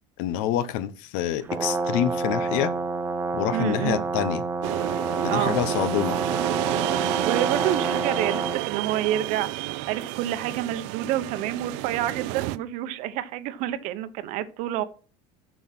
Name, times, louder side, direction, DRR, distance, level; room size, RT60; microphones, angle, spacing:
voice 1, 0.2-2.7 3.3-4.4 5.2-6.2, left 11 dB, 70° left, 0.8 m, -27 dB
Brass instrument, 1.4-8.6, right 3 dB, 15° right, 0.8 m, -28 dB
voice 2, 3.5-4.0 5.3-5.6 7.2-14.8, right 12 dB, 55° right, 0.9 m, -28 dB
sound 1, 4.6-12.6, right 18 dB, 75° right, 0.5 m, -30 dB
7.2 x 6.2 x 5.9 m
cardioid pair, 165°, 15 cm